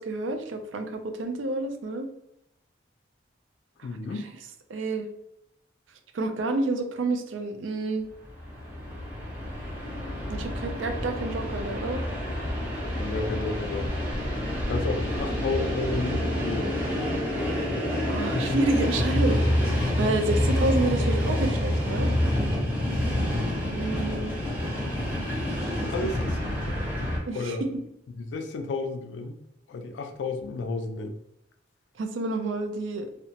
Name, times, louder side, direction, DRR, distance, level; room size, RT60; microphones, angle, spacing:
voice 1, 0.0-2.1 3.8-3.9 4.7-5.1 6.1-8.1 10.3-12.0 18.1-22.1 23.7-24.3 25.8-25.9 27.3-27.7 32.0-33.1, right 2 dB, 85° right, 6 dB, 0.4 m, -29 dB
voice 2, 3.8-4.3 12.9-13.9 14.6-16.7 22.8-23.4 25.7-26.8 27.3-27.7 28.2-29.4 29.7-31.2, left 3 dB, 70° left, 6 dB, 0.3 m, -32 dB
Train, 8.2-27.2, left 1 dB, 10° right, 0.8 m, -28 dB
2.8 x 2.0 x 2.8 m, 0.82 s
head